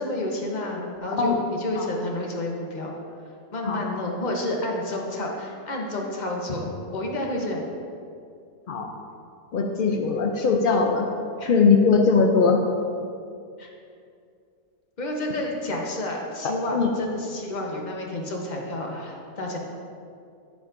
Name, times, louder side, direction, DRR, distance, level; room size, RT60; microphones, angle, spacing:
voice 1, 0.0-2.9 3.5-7.7 11.4-11.5 13.6-13.7 15.0-19.6, left 1 dB, 35° left, 0 dB, 0.9 m, -30 dB
voice 2, 9.5-11.1 11.5-12.6 16.7-16.9, left 5 dB, 75° left, 2 dB, 0.5 m, -20 dB
10.5 x 7.1 x 2.5 m, 2.4 s
omnidirectional pair, 1.6 m